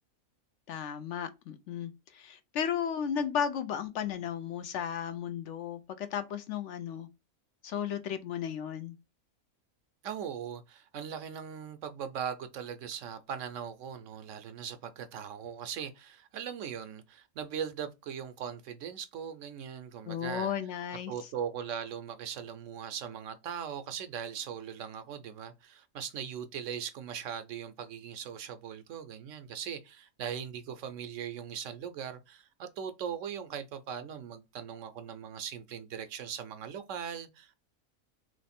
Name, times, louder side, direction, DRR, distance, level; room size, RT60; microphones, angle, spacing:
voice 1, 0.7-7.1 7.6-9.0 20.1-21.1, left 8 dB, 65° left, 0.8 m, -34 dB
voice 2, 10.0-20.5 21.1-37.5, right 8 dB, 70° right, 0.9 m, -40 dB
3.1 x 3.1 x 4.2 m
omnidirectional pair, 1.4 m